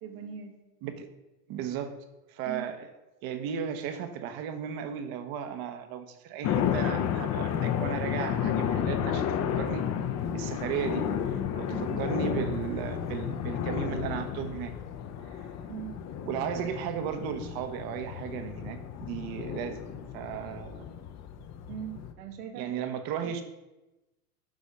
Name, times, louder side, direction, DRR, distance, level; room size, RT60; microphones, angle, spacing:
voice 1, 0.0-0.6 2.4-2.6 11.7-12.0 15.7-16.0 21.7-22.8 23.2-23.3, right 8 dB, 65° right, 5 dB, 1.6 m, -41 dB
voice 2, 1.5-1.9 2.3-2.9 3.2-9.3 9.6-9.8 10.3-14.7 15.3-15.5 16.2-19.9 20.1-20.9 22.5-23.4, right 8 dB, 50° right, 8 dB, 1.2 m, -35 dB
sound 1, 6.4-22.1, left 8 dB, 35° left, 0.8 m, -32 dB
11.5 x 4.1 x 5.2 m, 1.0 s
hypercardioid pair, 105°, 48 cm